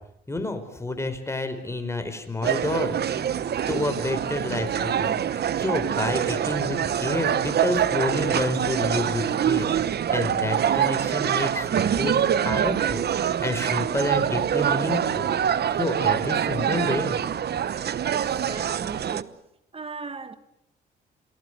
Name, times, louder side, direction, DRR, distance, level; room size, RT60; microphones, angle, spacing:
voice 1, 0.3-3.3 3.7-5.2 5.6-12.2 12.4-13.1 13.4-15.3 15.7-17.2, left 2 dB, 15° left, 4.6 m, -29 dB
sound 1, 2.4-19.2, right 9 dB, 55° right, 1.0 m, -25 dB
voice 2, 18.1-19.4 19.7-20.4, right 4 dB, 30° right, 2.1 m, -38 dB
28.0 x 19.0 x 8.0 m
cardioid pair, 90°, 20 cm